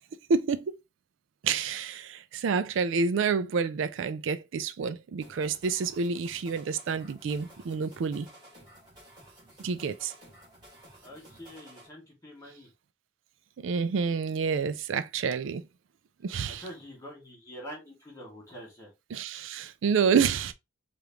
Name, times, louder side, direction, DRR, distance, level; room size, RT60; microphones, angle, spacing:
voice 1, 0.3-0.7 1.4-8.3 9.6-10.1 13.6-15.6 16.2-16.6 19.1-20.5, right 5 dB, 70° right, 0.4 m, -28 dB
sound 1, 5.2-11.9, right 1 dB, 25° right, 2.3 m, -53 dB
voice 2, 11.0-12.7 16.4-18.9, equal, 15° left, 2.2 m, -45 dB
4.9 x 2.5 x 2.9 m
head